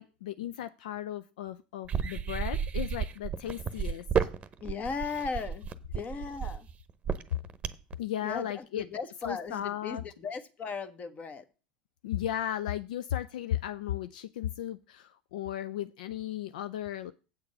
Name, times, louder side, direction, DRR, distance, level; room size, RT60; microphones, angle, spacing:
voice 1, 0.0-4.0 8.0-8.9 9.2-10.0 12.0-17.1, left 11 dB, 70° left, 12 dB, 0.4 m, -35 dB
sound 1, 1.8-7.9, right 7 dB, 25° right, 0.9 m, -32 dB
voice 2, 4.6-6.7 8.2-11.4, left 5 dB, 30° left, 10 dB, 1.2 m, -37 dB
8.2 x 6.6 x 5.3 m, 0.34 s
figure-of-eight pair, 75°, 5 cm